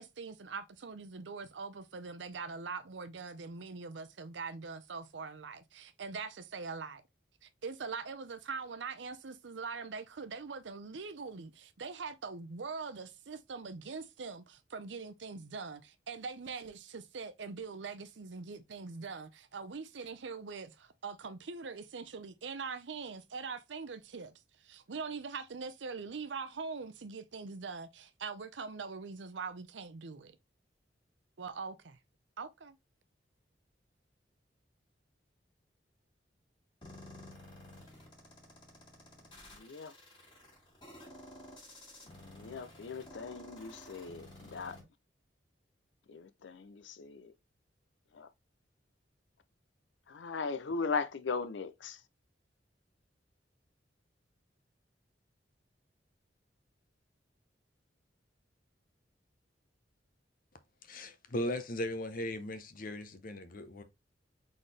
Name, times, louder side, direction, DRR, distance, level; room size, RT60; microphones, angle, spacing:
voice 1, 0.0-7.0 7.4-30.4 31.4-32.0 32.4-32.8, right 4 dB, 80° right, 0.7 m, -43 dB
sound 1, 36.8-44.8, left 1 dB, 25° left, 2.1 m, -52 dB
voice 2, 39.5-39.9 42.2-44.8 46.1-47.3 48.1-48.3 50.1-52.0, left 4 dB, 90° left, 0.5 m, -38 dB
voice 3, 60.9-63.8, left 1 dB, 50° left, 0.8 m, -38 dB
4.1 x 3.9 x 3.3 m
head